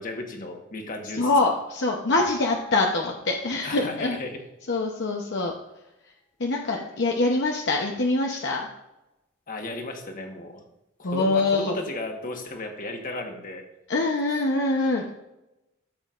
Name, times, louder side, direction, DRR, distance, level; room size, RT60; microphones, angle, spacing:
voice 1, 0.0-1.6 3.6-4.4 9.5-10.6 11.0-13.6, left 2 dB, 45° left, 3 dB, 1.3 m, -35 dB
voice 2, 1.1-4.2 4.7-5.5 6.4-8.7 11.0-11.8 13.9-15.2, left 2 dB, 65° left, 1 dB, 0.8 m, -24 dB
sound 1, 2.2-3.8 4.1-4.3, equal, 10° left, 0.7 m, -39 dB
13.5 x 7.2 x 2.5 m, 0.93 s
head